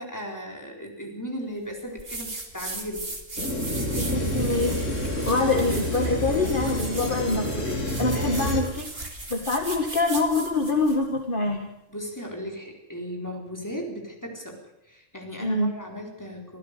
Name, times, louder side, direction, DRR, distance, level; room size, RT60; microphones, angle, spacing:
voice 1, 0.0-3.1 11.9-16.6, equal, 15° left, 1 dB, 4.2 m, -36 dB
sound 1, 2.0-11.0, right 2 dB, 50° right, 2.9 m, -38 dB
sound 2, 3.4-8.6, left 1 dB, 85° left, 3.7 m, -28 dB
voice 2, 4.0-8.9 9.3-11.7 15.4-15.7, left 3 dB, 45° left, 3 dB, 2.0 m, -25 dB
25.5 x 15.0 x 6.7 m, 0.84 s
omnidirectional pair, 1.3 m